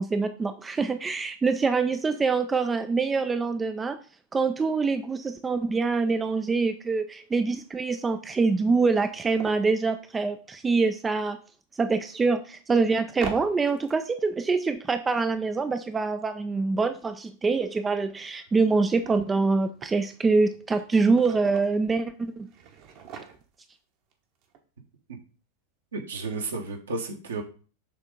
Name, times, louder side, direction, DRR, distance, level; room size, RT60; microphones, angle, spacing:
voice 1, 0.0-4.0 4.3-11.4 11.8-22.5, right 4 dB, 15° right, 9 dB, 0.4 m, -25 dB
sound 1, 5.4-5.5 5.8-5.9 6.4-6.5 7.6-7.7 7.9-8.0 8.6-9.7 11.8-11.9 13.1-14.3 18.2-20.0 20.4-21.8 22.4-23.7 24.1-24.2 24.4-24.6, right 7 dB, 45° right, 1.1 m, -42 dB
voice 2, 25.9-27.4, right 3 dB, 65° right, 3 dB, 1.4 m, -32 dB
6.8 x 3.5 x 5.1 m, 0.37 s
figure-of-eight pair, 90°, 0 cm